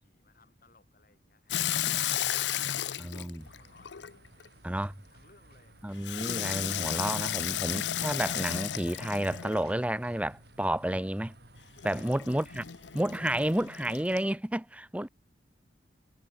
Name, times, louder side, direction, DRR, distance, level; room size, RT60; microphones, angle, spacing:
voice 1, 0.0-3.2 3.6-4.1 4.7-6.3 12.3-13.3, left 3 dB, 55° left, 6.5 m, -64 dB
Water tap faucet / Sink (filling or washing), 1.5-4.5 6.0-9.8 11.8-14.3, left 11 dB, 90° left, 0.7 m, -33 dB
voice 2, 3.0-3.5 4.6-4.9 5.8-11.3 11.8-12.6 12.9-15.1, right 1 dB, 10° right, 0.9 m, -31 dB
sound 1, 3.4-13.7, right 1 dB, 65° right, 6.2 m, -56 dB
head